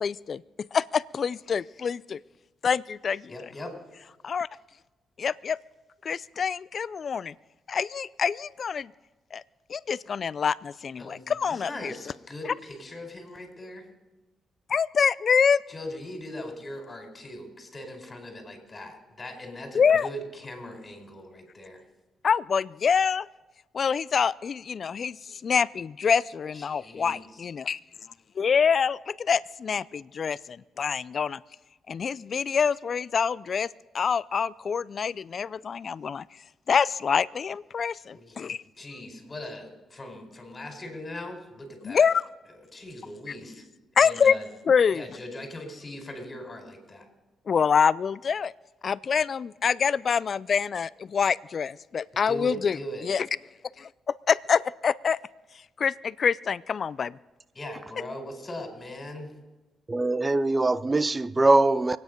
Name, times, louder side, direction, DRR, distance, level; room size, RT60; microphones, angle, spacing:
voice 1, 0.0-2.2 2.6-3.3 4.2-4.5 5.2-5.6 6.0-7.3 7.7-8.9 9.3-9.4 9.7-11.9 12.5-12.6 14.7-15.6 19.7-20.1 22.2-23.3 23.7-27.8 28.4-31.4 31.9-33.7 33.9-36.3 36.7-38.6 41.8-42.2 44.0-44.3 44.7-45.0 47.5-48.5 48.8-52.8 53.0-53.3 53.8-55.2 55.8-57.2, left 6 dB, 55° left, 0.4 m, -26 dB
voice 2, 3.3-3.7 11.0-13.9 15.7-21.8 26.5-27.4 38.1-42.1 42.7-43.6 43.9-44.5 44.9-47.1 52.3-53.1 57.5-59.3, left 1 dB, 30° left, 4.4 m, -40 dB
voice 3, 59.9-62.0, right 2 dB, 25° right, 0.6 m, -22 dB
24.0 x 9.4 x 5.3 m
supercardioid pair, 60°, 0 cm